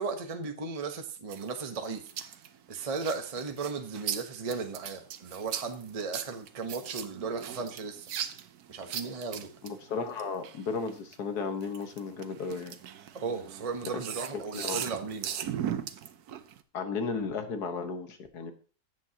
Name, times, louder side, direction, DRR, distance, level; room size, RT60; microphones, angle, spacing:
voice 1, 0.0-2.1 2.7-8.1 8.7-9.5 13.1-15.3, right 4 dB, 25° right, 5 dB, 1.0 m, -36 dB
sound 1, 1.3-11.1 11.6-16.6, right 9 dB, 80° right, 1.3 m, -38 dB
voice 2, 9.6-12.8 14.5-14.8 16.7-18.5, left 5 dB, 85° left, 7 dB, 1.8 m, -34 dB
14.0 x 8.4 x 2.9 m, 0.38 s
omnidirectional pair, 1.6 m